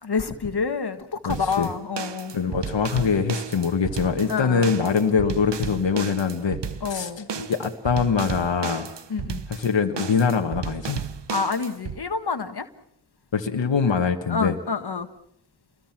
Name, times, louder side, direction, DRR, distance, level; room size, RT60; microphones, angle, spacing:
voice 1, 0.0-2.4 4.3-4.7 6.8-7.3 9.1-9.4 11.3-12.7 13.8-13.9 14.3-15.1, left 5 dB, 60° left, 8 dB, 1.6 m, -28 dB
voice 2, 1.2-1.7 2.3-6.6 6.9-8.9 9.5-11.0 13.3-14.6, left 6 dB, 80° left, 4 dB, 1.6 m, -23 dB
sound 1, 1.3-12.0, right 6 dB, 70° right, 1.1 m, -34 dB
29.0 x 21.5 x 6.0 m, 0.73 s
cardioid pair, 40°, 44 cm